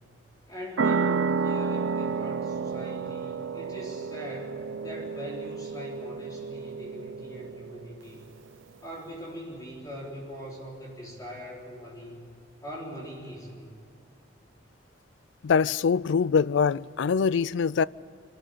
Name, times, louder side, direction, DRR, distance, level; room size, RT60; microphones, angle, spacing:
voice 1, 0.5-8.3 8.8-12.3 12.6-13.8, equal, 20° left, 3.9 m, -41 dB
sound 1, 0.8-8.0, right 5 dB, 85° right, 0.6 m, -31 dB
voice 2, 15.4-17.9, left 6 dB, 75° left, 0.4 m, -23 dB
25.5 x 12.5 x 8.4 m
head